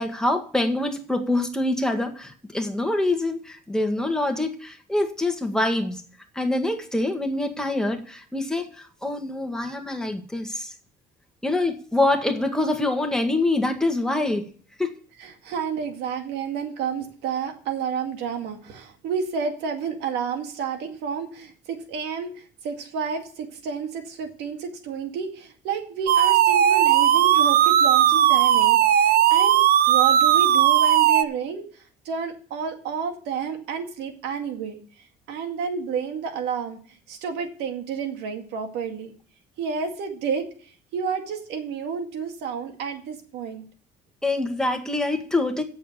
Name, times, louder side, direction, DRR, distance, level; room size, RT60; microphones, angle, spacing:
voice 1, 0.0-6.0 6.3-10.7 11.4-14.5 14.8-14.9 44.2-45.6, left 2 dB, 5° left, 4 dB, 1.8 m, -25 dB
voice 2, 15.2-29.6 29.9-34.8 35.3-39.1 39.6-43.6, right 6 dB, 85° right, 5 dB, 2.1 m, -30 dB
sound 1, 26.1-31.2, right 11 dB, 65° right, 0.7 m, -17 dB
8.3 x 7.1 x 7.4 m, 0.44 s
cardioid pair, 110°, 17 cm